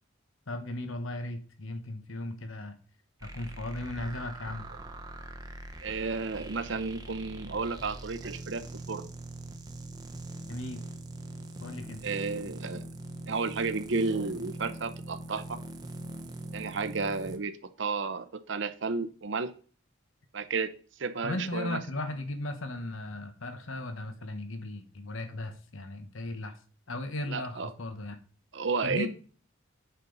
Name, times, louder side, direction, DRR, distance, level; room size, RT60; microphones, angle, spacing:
voice 1, 0.5-2.8 3.2-4.7 10.5-10.8 11.6-12.0 21.2-26.6 26.9-28.2 28.8-29.1, left 1 dB, 75° left, 8 dB, 1.1 m, -36 dB
sound 1, 3.2-17.4, right 2 dB, 20° right, 0.7 m, -42 dB
voice 2, 5.8-8.6 8.9-9.1 12.0-12.8 13.3-15.6 16.5-19.5 20.3-20.7 21.0-21.8 27.3-27.7 28.5-29.1, right 4 dB, 60° right, 11 dB, 0.7 m, -32 dB
8.3 x 6.9 x 4.0 m, 0.42 s
head